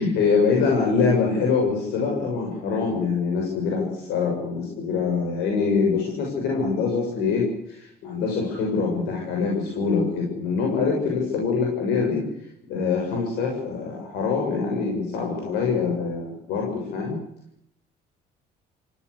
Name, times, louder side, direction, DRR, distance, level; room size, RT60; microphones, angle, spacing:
voice 1, 0.0-12.3 12.7-17.2, left 5 dB, 85° left, 0 dB, 7.0 m, -24 dB
28.0 x 16.5 x 8.4 m, 0.73 s
cardioid pair, 110°, 17 cm